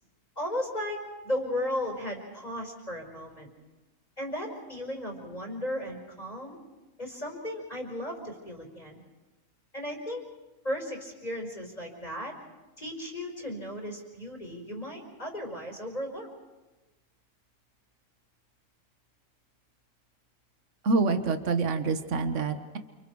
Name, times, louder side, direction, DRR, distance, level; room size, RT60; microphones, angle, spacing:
voice 1, 0.3-3.5 4.2-6.6 7.0-9.0 9.7-10.2 10.6-12.3 12.8-16.3, left 1 dB, 25° left, 2 dB, 5.2 m, -35 dB
voice 2, 20.8-22.8, right 4 dB, 55° right, 8 dB, 1.7 m, -26 dB
29.0 x 27.5 x 4.8 m, 1.1 s
omnidirectional pair, 1.6 m